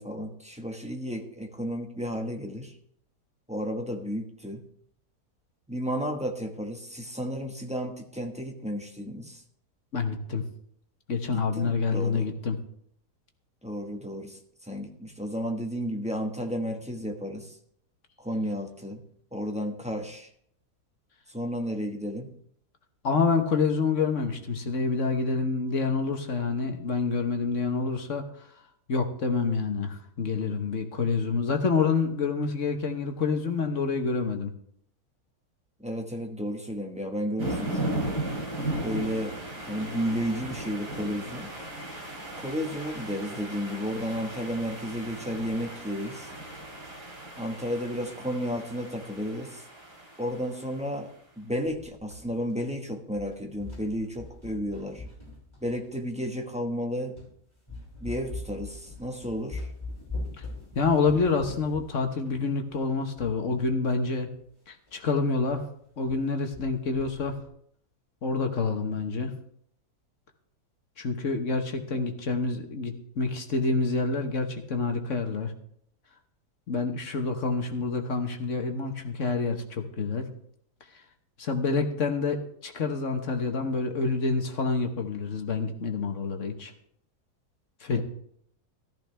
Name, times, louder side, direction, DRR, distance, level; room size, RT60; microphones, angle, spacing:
voice 1, 0.0-2.7 3.5-4.6 5.7-9.4 11.3-12.3 13.6-17.6 18.2-19.0 19.3-20.3 21.3-22.3 35.8-37.9 38.8-39.4 39.7-41.5 42.4-46.3 47.4-49.6 50.2-55.0 55.6-57.1 58.0-59.7 87.9-88.0, equal, 5° right, 3 dB, 1.2 m, -32 dB
voice 2, 9.9-10.4 11.1-12.6 23.0-28.5 28.9-34.5 60.4-60.5 60.7-64.3 64.7-65.6 66.0-67.4 68.2-69.3 71.0-75.5 76.7-80.3 81.4-86.7 87.8-88.0, left 4 dB, 50° left, 5 dB, 1.5 m, -27 dB
sound 1, 37.4-50.8, right 1 dB, 80° right, 3.7 m, -36 dB
sound 2, 51.7-52.8 53.1-56.1 56.7-56.8 57.2-57.4 57.7-63.7 64.0-64.1 64.4-64.5 64.9-65.1 65.5-65.6 65.9-66.2 66.5-67.5, left 2 dB, 15° left, 5.7 m, -42 dB
14.0 x 13.5 x 3.4 m, 0.68 s
omnidirectional pair, 1.7 m